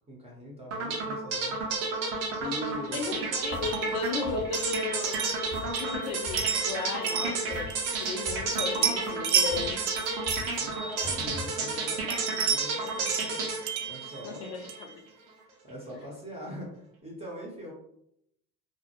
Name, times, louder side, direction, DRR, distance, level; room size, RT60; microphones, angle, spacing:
voice 1, 0.1-1.6 2.4-3.1 10.6-13.4 13.9-14.6 15.6-17.7, equal, 15° right, -4 dB, 0.7 m, -42 dB
sound 1, 0.7-14.8, right 3 dB, 80° right, 0.7 m, -32 dB
voice 2, 2.9-5.3 5.8-9.8 14.2-14.9 15.9-16.0, left 5 dB, 75° left, 6 dB, 0.6 m, -35 dB
sound 2, 3.5-3.8 4.0-5.1 5.5-5.8 6.0-7.8 8.0-9.1 9.5-9.8 10.0-11.5, left 4 dB, 25° left, 0.8 m, -43 dB
sound 3, 3.6-8.3 8.6-11.5 11.9-14.9, right 7 dB, 50° right, 0.4 m, -33 dB
2.1 x 2.1 x 2.8 m, 0.77 s
hypercardioid pair, 75°, 40 cm